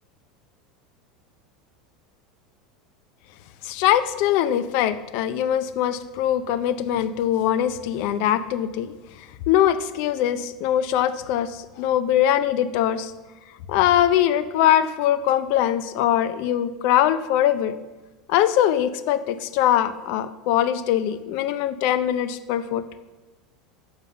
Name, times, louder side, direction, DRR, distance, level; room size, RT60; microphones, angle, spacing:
voice 1, 3.6-8.9 9.5-13.1 13.7-17.8 18.3-22.8, left 11 dB, 60° left, 13 dB, 0.5 m, -22 dB
7.0 x 5.4 x 6.5 m, 1.2 s
hypercardioid pair, 85°, 3 cm